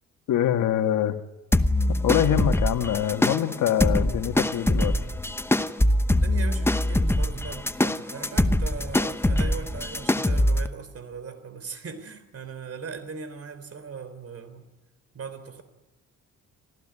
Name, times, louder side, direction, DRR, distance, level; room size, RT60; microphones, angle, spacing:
voice 1, 0.3-1.2 1.9-4.9, left 11 dB, 75° left, 8 dB, 1.6 m, -24 dB
sound 1, 1.5-10.7, left 1 dB, 10° left, 1.0 m, -23 dB
voice 2, 6.2-14.7 15.1-15.6, right 5 dB, 50° right, 12 dB, 3.5 m, -39 dB
26.5 x 15.5 x 10.0 m, 1.1 s
cardioid pair, 85°, 31 cm